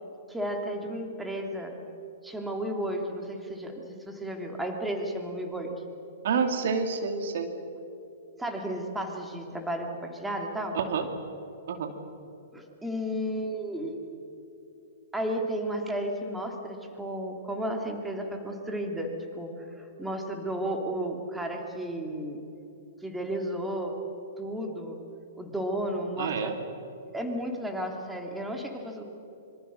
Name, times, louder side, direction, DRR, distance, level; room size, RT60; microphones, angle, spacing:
voice 1, 0.3-1.7 2.2-5.7 8.4-10.8 12.5-13.9 15.1-22.4 23.0-24.0 24.4-25.0 25.4-26.5 27.1-29.0, right 1 dB, 5° right, 3 dB, 3.2 m, -33 dB
voice 2, 6.2-7.5 10.7-11.1 11.7-11.9 26.2-26.6, right 5 dB, 60° right, 6 dB, 2.4 m, -28 dB
25.5 x 24.5 x 6.5 m, 2.9 s
hypercardioid pair, 115°, 0 cm